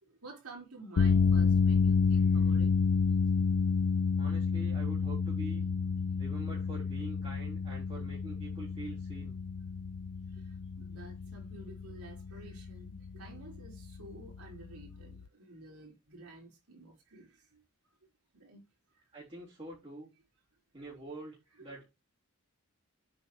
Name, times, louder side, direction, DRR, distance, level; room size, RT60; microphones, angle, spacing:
voice 1, 0.0-2.8 10.3-17.6 18.3-18.6 21.5-21.8, right 2 dB, 85° right, 3.7 m, -51 dB
sound 1, 1.0-15.2, left 5 dB, 85° left, 0.5 m, -30 dB
voice 2, 4.2-5.6 6.2-9.4 19.1-20.1 20.7-21.9, right 2 dB, 25° right, 3.7 m, -45 dB
7.9 x 5.2 x 4.6 m
head